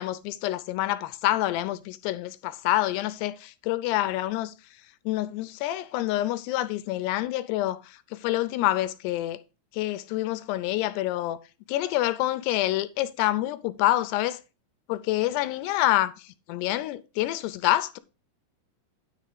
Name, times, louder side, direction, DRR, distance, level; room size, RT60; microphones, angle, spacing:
voice 1, 0.0-4.5 5.1-9.4 9.7-11.4 11.7-14.4 14.9-18.0, left 15 dB, 85° left, 2.6 m, -27 dB
9.7 x 3.6 x 6.6 m
omnidirectional pair, 5.1 m